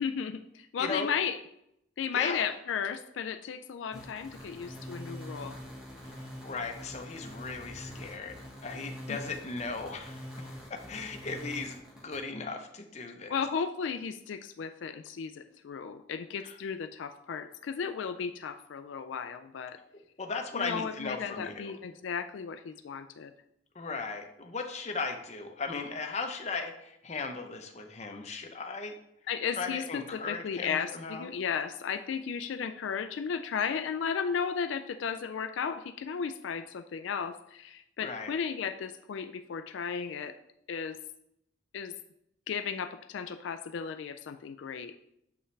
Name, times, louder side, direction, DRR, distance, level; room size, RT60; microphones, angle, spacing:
voice 1, 0.0-1.4 2.0-5.6 9.1-9.2 13.3-19.8 20.5-23.3 29.3-40.3 40.7-41.0 41.7-41.9 42.5-44.9, left 6 dB, 80° left, 9 dB, 0.4 m, -34 dB
voice 2, 0.8-1.1 2.1-2.4 6.0-13.4 16.4-16.6 20.2-21.8 23.7-28.9 29.6-31.3 38.0-38.3, left 4 dB, 35° left, 5 dB, 0.7 m, -37 dB
sound 1, 3.9-12.2, equal, 5° right, 1.4 m, -44 dB
7.1 x 5.5 x 3.2 m, 0.78 s
head